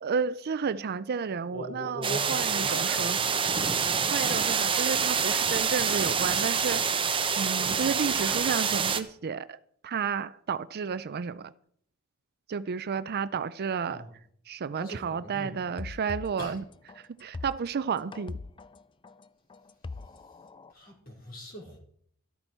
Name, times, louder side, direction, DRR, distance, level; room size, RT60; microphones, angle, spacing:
voice 1, 0.0-3.4 4.1-6.8 7.4-11.5 12.5-14.1 14.5-16.6 17.0-18.4, right 6 dB, 45° right, 0.4 m, -32 dB
voice 2, 1.5-3.9 13.9-14.1 14.7-15.6 16.4-16.6 20.7-21.8, right 1 dB, 45° left, 4.0 m, -41 dB
sound 1, 2.0-9.0, right 6 dB, 25° right, 0.8 m, -27 dB
sound 2, 15.8-20.7, left 3 dB, 25° left, 0.4 m, -41 dB
13.0 x 12.5 x 4.5 m
head